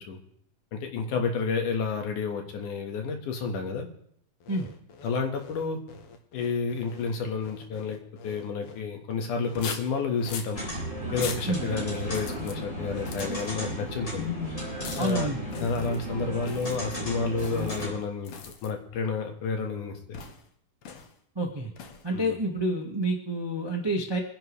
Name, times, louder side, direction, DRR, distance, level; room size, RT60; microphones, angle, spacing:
voice 1, 0.7-3.9 5.0-5.8 6.3-10.6 11.1-14.3 14.9-15.3 15.6-18.3 18.6-20.2 22.1-22.3, left 4 dB, 75° left, 3 dB, 3.1 m, -30 dB
sound 1, 4.4-8.8 9.4-10.6 11.1-11.5 12.1-12.6 12.9-13.5 14.8-15.2 15.5-16.0 16.4-16.8 17.4-17.8 18.2-18.7 20.1-20.5 20.8-21.2 21.8-22.1, left 5 dB, 60° left, 1.7 m, -41 dB
sound 2, 10.5-17.9, equal, 25° left, 3.9 m, -34 dB
voice 2, 15.0-15.4 21.3-21.7 22.0-24.2, right 1 dB, 25° right, 1 dB, 0.6 m, -28 dB
25.0 x 10.5 x 3.3 m, 0.70 s
omnidirectional pair, 3.7 m